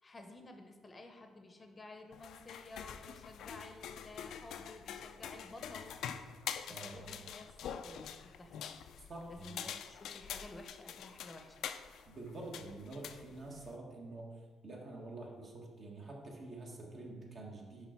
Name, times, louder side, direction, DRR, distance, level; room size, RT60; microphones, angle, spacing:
voice 1, 0.0-6.0 6.7-11.7, left 2 dB, 30° left, 5 dB, 0.7 m, -53 dB
sound 1, 2.1-13.8, left 8 dB, 80° left, 0.3 m, -46 dB
voice 2, 6.7-7.2 9.1-9.7 12.1-14.3 14.6-17.9, right 2 dB, 50° right, -1 dB, 1.5 m, -47 dB
5.8 x 5.1 x 4.4 m, 1.5 s
cardioid pair, 90°, 0 cm